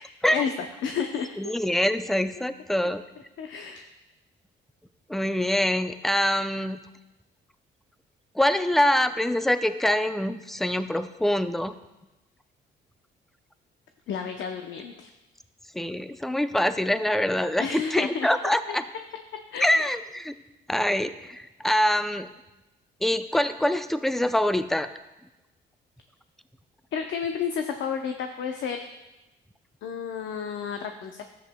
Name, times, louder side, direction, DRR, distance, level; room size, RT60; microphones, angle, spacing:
voice 1, 0.0-1.3 3.4-3.9 14.1-15.1 17.6-18.3 18.7-18.8 19.5-19.7 26.9-28.8 29.8-31.2, left 7 dB, 70° left, 5 dB, 0.6 m, -31 dB
voice 2, 1.4-3.0 5.1-6.8 8.4-11.7 15.7-18.8 19.6-20.3 20.7-22.3 23.0-24.9, left 1 dB, ahead, 11 dB, 0.4 m, -24 dB
13.0 x 8.2 x 2.2 m, 1.0 s
cardioid pair, 90°, 20 cm